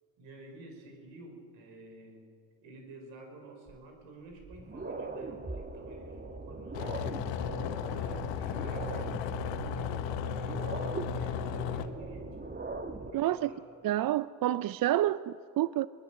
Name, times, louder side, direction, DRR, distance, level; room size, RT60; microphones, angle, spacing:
voice 1, 0.2-2.3 2.6-7.0 7.2-12.4 13.1-13.6, right 2 dB, 80° right, 5.6 m, -50 dB
sound 1, 3.7-3.8 4.3-13.1, right 3 dB, 20° right, 1.8 m, -41 dB
sound 2, 6.7-11.9, left 8 dB, 75° left, 1.2 m, -35 dB
voice 2, 13.1-13.5 13.8-15.9, right 13 dB, 50° right, 0.6 m, -28 dB
22.0 x 20.0 x 7.7 m
supercardioid pair, 60°, 45 cm